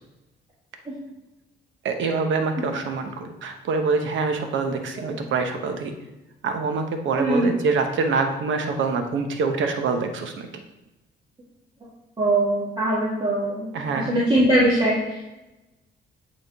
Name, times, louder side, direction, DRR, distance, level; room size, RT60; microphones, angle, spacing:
voice 1, 1.8-5.9 6.4-10.5 13.7-14.1, right 4 dB, 75° right, 6 dB, 0.9 m, -25 dB
voice 2, 7.2-7.5 12.2-13.7 13.9-15.2, right 1 dB, 25° right, -7 dB, 1.6 m, -22 dB
8.9 x 3.7 x 3.5 m, 1.0 s
cardioid pair, 90°, 20 cm